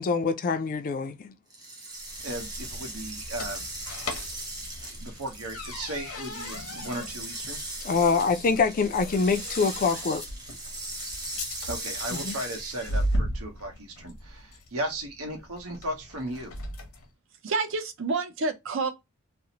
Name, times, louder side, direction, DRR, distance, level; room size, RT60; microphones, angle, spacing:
voice 1, 0.0-1.3 7.8-10.2 12.1-12.3, left 4 dB, 40° left, 0.3 m, -25 dB
sound 1, 1.5-13.1, right 2 dB, 20° right, 0.7 m, -39 dB
sound 2, 2.0-17.1, equal, 80° left, 0.7 m, -37 dB
voice 2, 2.2-3.6 4.8-7.6 11.7-16.5, right 1 dB, 90° right, 0.9 m, -36 dB
voice 3, 17.4-18.9, right 4 dB, 60° right, 0.5 m, -28 dB
2.6 x 2.0 x 2.8 m
head